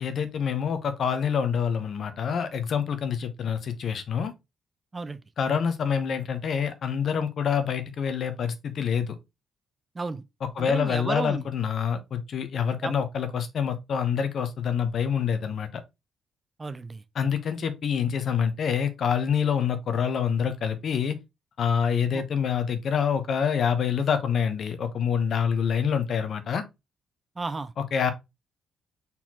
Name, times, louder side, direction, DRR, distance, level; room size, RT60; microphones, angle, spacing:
voice 1, 0.0-4.3 5.4-9.2 10.6-15.8 17.1-21.2 21.6-26.6 27.8-28.1, left 7 dB, 60° left, 0.9 m, -26 dB
voice 2, 10.6-11.4 12.8-12.9 16.6-17.0 22.1-22.2 27.4-27.7, right 3 dB, 30° right, 0.5 m, -32 dB
4.2 x 4.1 x 2.8 m
supercardioid pair, 60°, 0 cm